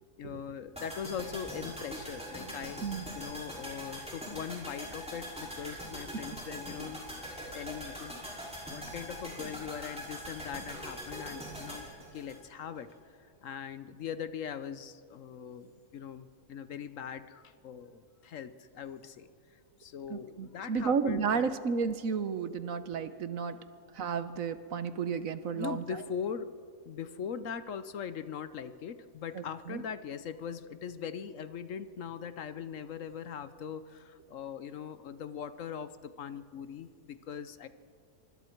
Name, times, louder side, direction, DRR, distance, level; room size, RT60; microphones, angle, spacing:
voice 1, 0.2-2.9 3.1-7.0 7.5-11.9 12.1-19.3 19.8-21.5 25.5-26.5 26.8-37.7, left 7 dB, 65° left, 12 dB, 1.1 m, -41 dB
sound 1, 0.8-12.9 13.2-13.3, equal, 5° right, 5.6 m, -42 dB
voice 2, 20.1-23.6 24.0-25.8 29.7-29.8, right 5 dB, 65° right, 12 dB, 1.3 m, -32 dB
24.5 x 24.5 x 4.5 m, 2.2 s
omnidirectional pair, 1.6 m